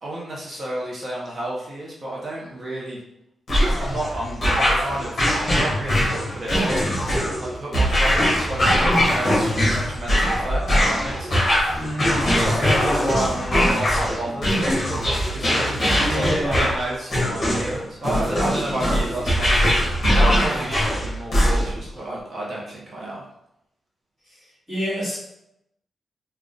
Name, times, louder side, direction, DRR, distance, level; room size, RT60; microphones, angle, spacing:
voice 1, 0.0-3.0 3.6-6.8 7.4-11.7 12.3-14.5 15.3-19.5 20.1-23.2, right 1 dB, 35° right, -4 dB, 0.7 m, -31 dB
sound 1, 3.5-21.9, equal, 30° left, 1.5 m, -21 dB
voice 2, 11.7-12.3 12.6-13.6 15.9-16.7 24.2-25.2, equal, 15° right, -11 dB, 1.5 m, -29 dB
3.7 x 2.2 x 3.7 m, 0.82 s
wide cardioid pair, 170°, 0 cm